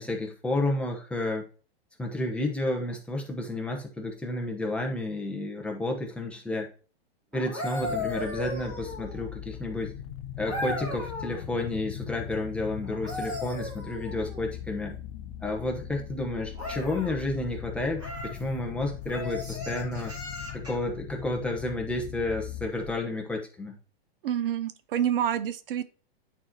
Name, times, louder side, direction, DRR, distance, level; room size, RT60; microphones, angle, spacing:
voice 1, 0.0-1.4 2.0-6.7 7.3-9.9 10.4-14.9 15.4-20.1 20.5-23.8, left 2 dB, 5° left, 0 dB, 1.0 m, -31 dB
sound 1, 7.3-9.3 10.5-11.4 12.8-14.5 16.5-17.2 18.0-18.4 19.1-20.9 22.7-22.9, left 1 dB, 15° right, 2.4 m, -36 dB
sound 2, 7.8-22.7, left 11 dB, 35° left, 0.5 m, -40 dB
voice 2, 24.2-25.8, right 10 dB, 60° right, 14 dB, 0.7 m, -28 dB
9.1 x 4.4 x 2.9 m, 0.38 s
hypercardioid pair, 150°, 31 cm